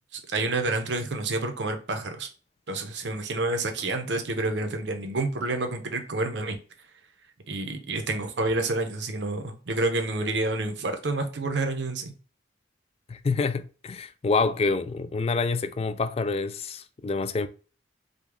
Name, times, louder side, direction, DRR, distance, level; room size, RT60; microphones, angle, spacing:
voice 1, 0.1-2.3 2.7-6.6 7.5-12.1, right 2 dB, 70° right, 0.8 m, -29 dB
voice 2, 13.1-17.5, left 4 dB, 30° left, 0.3 m, -27 dB
5.0 x 2.3 x 3.6 m
head